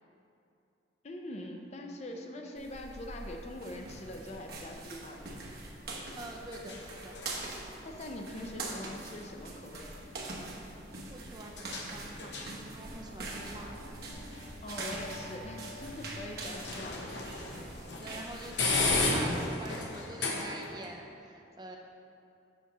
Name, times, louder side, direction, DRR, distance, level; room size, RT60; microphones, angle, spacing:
voice 1, 1.0-5.3 7.8-10.1 14.6-17.0 18.1-18.2, left 1 dB, 35° left, 2 dB, 0.5 m, -43 dB
sound 1, 2.6-19.0, right 2 dB, 55° right, 1.0 m, -43 dB
sound 2, 3.4-20.9, left 3 dB, 75° left, 1.0 m, -38 dB
voice 2, 6.2-7.2 11.1-14.0 18.0-21.8, right 1 dB, 25° right, 1 dB, 0.5 m, -45 dB
7.2 x 4.2 x 5.9 m, 2.6 s
head